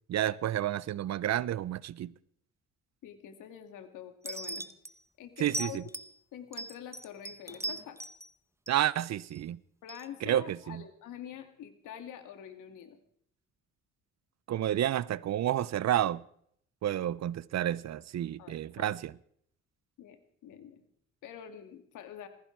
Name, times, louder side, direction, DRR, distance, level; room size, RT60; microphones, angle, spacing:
voice 1, 0.1-2.1 5.4-5.8 8.7-9.6 10.2-10.8 14.5-16.2 16.8-19.1, right 12 dB, 60° right, 0.7 m, -30 dB
voice 2, 3.0-4.7 5.2-5.9 6.3-8.0 9.8-13.0 18.4-19.0 20.0-20.2 20.4-20.8 21.2-22.3, left 9 dB, 85° left, 2.4 m, -46 dB
sound 1, 4.2-4.9 5.5-6.1 6.5-8.3 8.7-9.4 9.9-10.1, right 2 dB, 10° right, 0.9 m, -39 dB
19.5 x 15.5 x 4.7 m
cardioid pair, 90°, 30 cm